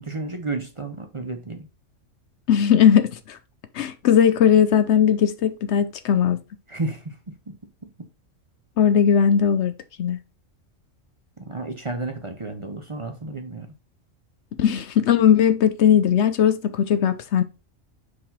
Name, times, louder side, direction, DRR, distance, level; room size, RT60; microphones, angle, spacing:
voice 1, 0.0-1.7 6.7-7.2 7.5-7.6 11.4-13.7, right 2 dB, 30° right, 0.8 m, -32 dB
voice 2, 2.5-3.4 3.7-6.4 8.8-9.7 10.0-10.2 14.6-17.4, left 8 dB, 65° left, 0.8 m, -18 dB
5.8 x 4.9 x 4.1 m
omnidirectional pair, 1.3 m